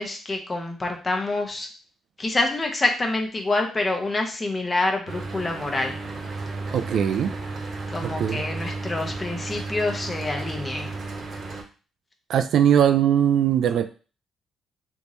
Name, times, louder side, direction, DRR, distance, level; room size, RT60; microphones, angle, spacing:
voice 1, 0.0-1.7 2.2-6.0 7.9-10.9, left 2 dB, 25° left, 3 dB, 0.9 m, -26 dB
Mechanical fan, 5.1-11.6, right 3 dB, 50° right, 1.0 m, -33 dB
voice 2, 6.7-7.3 8.0-8.5 12.3-13.9, right 9 dB, 70° right, 8 dB, 0.3 m, -20 dB
3.5 x 3.0 x 2.7 m, 0.36 s
cardioid pair, 90°, 0 cm